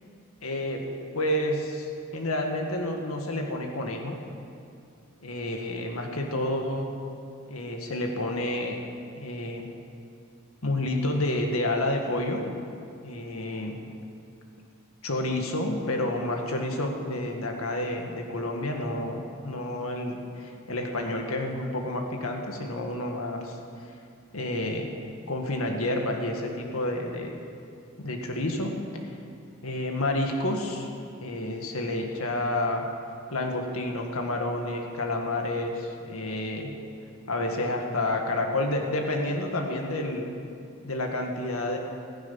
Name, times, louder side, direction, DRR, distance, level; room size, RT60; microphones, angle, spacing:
voice 1, 0.4-0.8 1.1-4.2 5.2-6.9 7.5-8.8 9.2-9.7 10.6-12.5 13.0-13.8 15.0-23.6 24.3-24.9 25.3-27.4 28.0-29.1 29.6-30.9 31.2-32.9 33.3-36.7 37.3-40.3 40.8-41.8, left 1 dB, 80° left, 3 dB, 1.9 m, -29 dB
15.5 x 14.5 x 5.6 m, 2.5 s
head